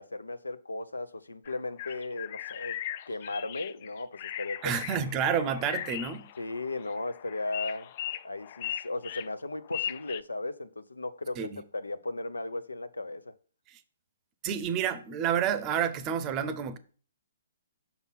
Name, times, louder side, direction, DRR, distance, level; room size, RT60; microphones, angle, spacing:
voice 1, 0.0-2.8 3.1-4.8 6.4-7.9 8.2-13.3, left 2 dB, 85° left, 0.6 m, -36 dB
sound 1, 1.5-10.2, left 11 dB, 45° left, 0.3 m, -39 dB
voice 2, 4.6-6.3 11.4-11.6 14.4-16.8, right 8 dB, 25° right, 0.7 m, -29 dB
5.9 x 4.0 x 5.5 m
figure-of-eight pair, 135°, 0 cm